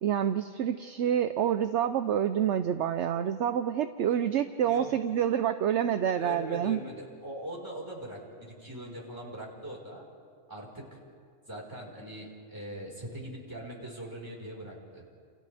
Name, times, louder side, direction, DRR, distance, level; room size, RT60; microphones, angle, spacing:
voice 1, 0.0-6.8, right 9 dB, 65° right, 9 dB, 0.9 m, -27 dB
voice 2, 6.2-10.0 10.5-11.0 11.5-15.0, right 1 dB, 15° right, -3 dB, 4.8 m, -41 dB
29.5 x 28.5 x 3.5 m, 2.1 s
omnidirectional pair, 1.4 m